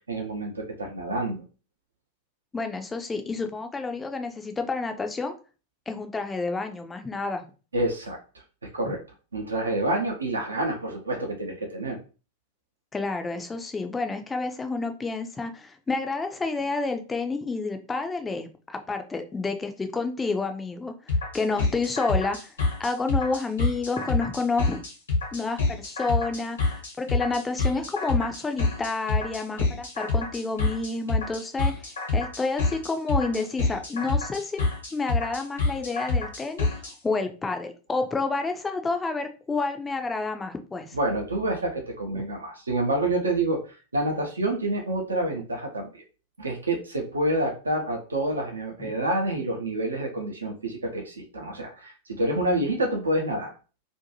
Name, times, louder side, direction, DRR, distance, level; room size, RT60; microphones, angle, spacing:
voice 1, 0.1-1.4 7.7-8.2 8.7-9.0 9.3-12.0 40.9-46.0 46.4-53.5, right 1 dB, 75° right, 2 dB, 0.6 m, -28 dB
voice 2, 2.5-5.3 5.9-7.4 8.9-9.0 12.9-20.9 21.3-22.5 22.8-24.8 25.3-31.7 32.1-34.6 34.9-36.7 37.0-41.0 42.1-42.2 48.8-48.9, left 3 dB, 15° left, 6 dB, 0.4 m, -29 dB
sound 1, 21.1-36.9, left 3 dB, 70° left, 1.0 m, -27 dB
2.6 x 2.2 x 2.8 m, 0.35 s
figure-of-eight pair, 90°, 0 cm